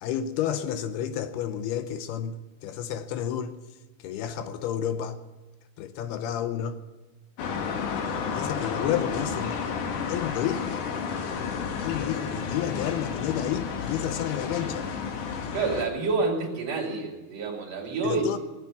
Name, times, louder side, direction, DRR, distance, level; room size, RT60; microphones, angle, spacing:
voice 1, 0.0-3.5 4.0-5.2 5.8-6.8 8.3-9.6 10.1-10.8 11.8-14.9 18.0-18.4, left 10 dB, 80° left, 2.6 m, -30 dB
sound 1, 7.4-15.9, left 6 dB, 65° left, 2.3 m, -31 dB
voice 2, 15.5-18.2, right 4 dB, 45° right, 3.6 m, -28 dB
18.0 x 8.8 x 8.2 m
omnidirectional pair, 4.8 m